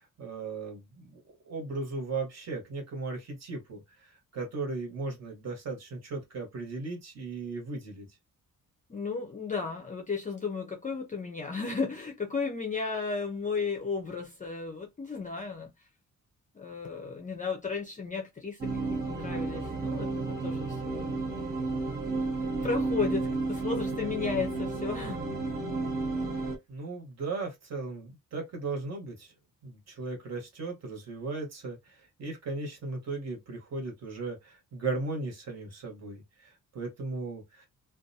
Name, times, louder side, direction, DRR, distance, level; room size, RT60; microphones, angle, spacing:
voice 1, 0.0-3.8 4.3-8.1 22.5-22.7 26.7-29.3 29.6-37.7, right 3 dB, 50° right, 1.2 m, -37 dB
voice 2, 8.9-15.7 16.5-20.1 20.4-21.2 22.6-25.3, left 5 dB, 25° left, 0.4 m, -34 dB
sound 1, 18.6-26.6, right 3 dB, 30° right, 0.7 m, -32 dB
2.5 x 2.3 x 2.6 m
wide cardioid pair, 170°, 33 cm